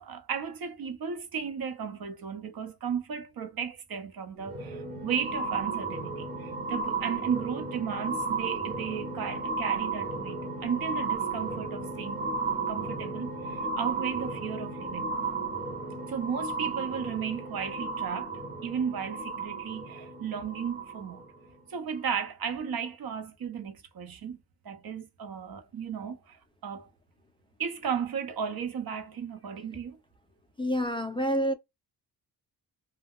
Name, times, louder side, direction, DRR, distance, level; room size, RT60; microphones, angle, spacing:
voice 1, 0.0-12.3 12.7-15.2 16.1-18.3 18.6-21.3 21.7-24.4 24.6-26.9 27.6-30.0, right 7 dB, 60° right, 0.7 m, -35 dB
sound 1, 4.4-21.2 22.0-22.1, right 4 dB, 20° right, 0.8 m, -34 dB
voice 2, 30.6-31.5, equal, 15° left, 0.3 m, -27 dB
2.3 x 2.1 x 3.4 m
wide cardioid pair, 105°, 42 cm